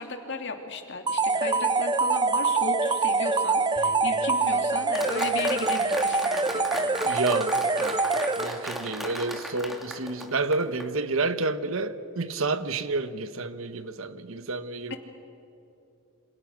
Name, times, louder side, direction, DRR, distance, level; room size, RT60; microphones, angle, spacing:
voice 1, 0.0-6.9 14.9-15.0, left 2 dB, 55° left, 2.8 m, -35 dB
sound 1, 1.1-8.8, right 3 dB, 20° right, 0.6 m, -25 dB
sound 2, 3.7-12.1, right 2 dB, 20° left, 4.5 m, -55 dB
Applause, 4.9-10.9, equal, ahead, 2.4 m, -36 dB
voice 2, 7.0-8.0 8.4-14.9, right 3 dB, 70° right, 1.2 m, -30 dB
28.0 x 26.5 x 6.5 m
head